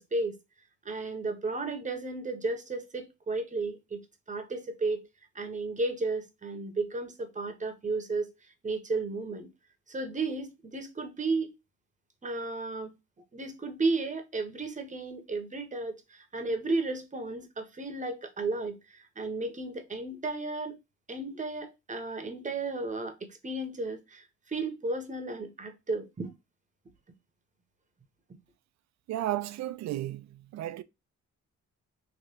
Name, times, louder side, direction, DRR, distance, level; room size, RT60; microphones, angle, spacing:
voice 1, 0.8-4.0 4.3-5.0 5.3-8.3 8.6-9.5 9.9-11.5 12.2-12.9 13.3-20.8 21.1-26.3, right 3 dB, 25° right, 1.0 m, -33 dB
voice 2, 29.1-30.8, right 14 dB, 65° right, 0.5 m, -33 dB
3.2 x 2.9 x 2.8 m
cardioid pair, 90°, 30 cm